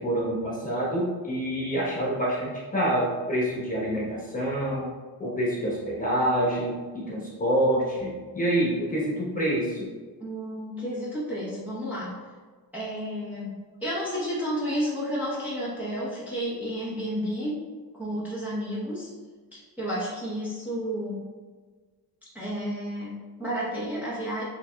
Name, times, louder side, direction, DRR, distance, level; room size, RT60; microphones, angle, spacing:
voice 1, 0.0-4.9 5.2-9.9, right 1 dB, 20° left, -5 dB, 1.0 m, -27 dB
voice 2, 10.2-12.2 12.7-17.6 17.9-19.1 19.5-21.2 22.3-24.4, equal, 5° right, -9 dB, 0.8 m, -31 dB
6.6 x 2.7 x 2.2 m, 1.4 s
wide cardioid pair, 165°, 40 cm